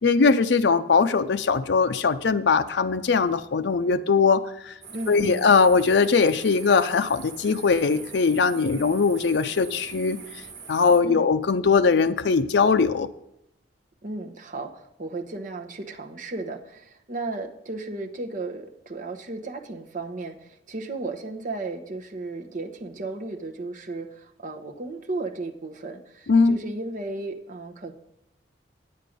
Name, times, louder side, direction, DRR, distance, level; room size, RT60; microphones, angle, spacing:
voice 1, 0.0-4.7 5.1-10.2 10.7-13.1 26.3-26.6, left 5 dB, 70° left, 9 dB, 0.5 m, -20 dB
sound 1, 4.8-11.0, right 5 dB, 65° right, 1.9 m, -43 dB
voice 2, 4.9-5.4 11.0-11.2 14.0-27.9, right 2 dB, 45° right, 4 dB, 1.0 m, -34 dB
9.2 x 8.7 x 5.2 m, 0.81 s
head